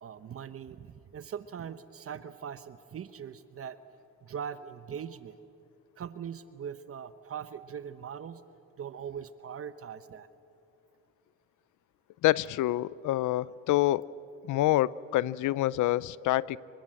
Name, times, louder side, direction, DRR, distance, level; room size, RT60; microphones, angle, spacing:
voice 1, 0.0-3.8 4.2-5.4 6.0-8.4 8.8-10.3, right 8 dB, 50° right, 0.9 m, -41 dB
voice 2, 12.2-14.0 14.4-16.6, left 15 dB, 75° left, 0.6 m, -27 dB
26.5 x 24.0 x 7.7 m
cardioid pair, 90°, 30 cm